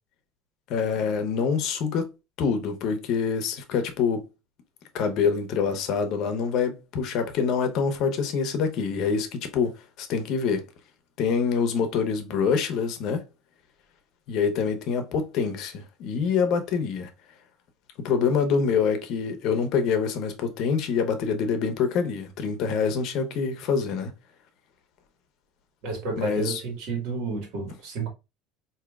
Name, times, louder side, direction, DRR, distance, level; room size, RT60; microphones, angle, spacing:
voice 1, 0.7-2.1 2.4-4.3 4.9-10.7 11.2-13.2 14.3-17.1 18.0-24.1 26.2-26.6, left 6 dB, 55° left, 0.7 m, -26 dB
voice 2, 25.8-28.1, right 3 dB, 65° right, 1.6 m, -31 dB
5.0 x 2.7 x 2.3 m
cardioid pair, 150°, 0 cm